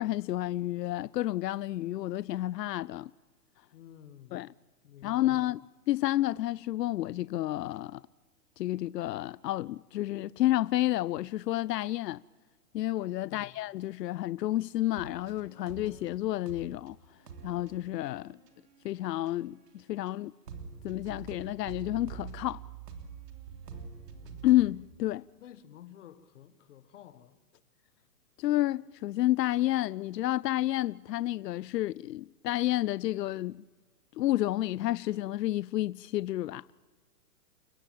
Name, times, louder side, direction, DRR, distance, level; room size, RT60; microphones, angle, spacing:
voice 1, 0.0-3.1 4.3-4.5 5.0-5.6 5.9-8.0 8.6-12.2 12.7-17.0 17.4-18.4 18.8-20.3 20.8-22.6 24.4-25.3 28.4-33.6 34.2-36.6, left 15 dB, 90° left, 0.5 m, -30 dB
voice 2, 3.7-4.5 4.8-5.5 13.2-13.6 25.4-27.4, left 10 dB, 50° left, 1.3 m, -52 dB
sound 1, 15.0-16.2 16.5-16.9 17.2-19.7 20.1-20.2 20.5-24.9, right 6 dB, 80° right, 3.4 m, -46 dB
29.5 x 14.5 x 7.4 m
hypercardioid pair, 165°, 48 cm